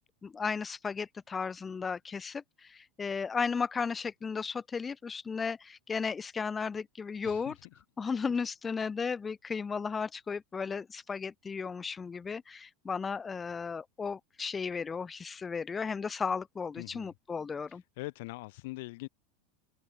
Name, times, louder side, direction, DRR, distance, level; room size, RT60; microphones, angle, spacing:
voice 1, 0.2-7.5 8.0-17.8, left 5 dB, 20° left, 0.4 m, -35 dB
voice 2, 7.2-7.5 16.8-17.1 18.0-19.1, left 22 dB, 70° left, 1.8 m, -42 dB
hypercardioid pair, 105°, 0 cm